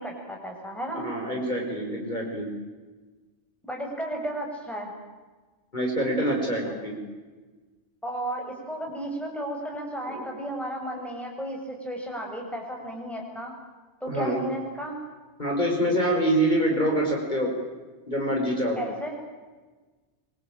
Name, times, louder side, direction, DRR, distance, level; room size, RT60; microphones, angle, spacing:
voice 1, 0.0-1.0 3.6-4.9 8.0-13.5 14.0-15.0 18.8-19.2, right 1 dB, ahead, 0 dB, 7.2 m, -33 dB
voice 2, 1.0-2.5 5.7-6.9 10.1-10.2 14.1-14.4 15.4-17.5 18.1-18.8, right 1 dB, 40° left, 0 dB, 5.7 m, -25 dB
26.0 x 25.5 x 8.9 m, 1.3 s
omnidirectional pair, 1.2 m